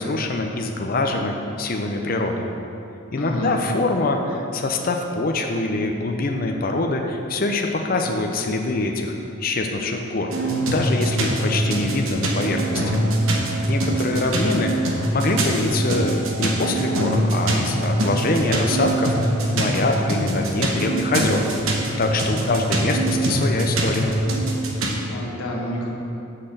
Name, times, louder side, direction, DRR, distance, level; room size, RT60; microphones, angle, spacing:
voice 1, 0.0-2.4 3.1-9.1 9.4-10.3 10.7-13.0 13.7-21.4 22.0-24.1, left 2 dB, 45° left, 3 dB, 0.5 m, -24 dB
voice 2, 3.1-3.6 13.8-14.4 22.3-22.7 24.7-25.9, left 1 dB, 85° left, -2 dB, 1.2 m, -31 dB
sound 1, 10.3-25.0, right 1 dB, 75° right, 1.0 m, -23 dB
6.5 x 5.7 x 6.5 m, 2.8 s
head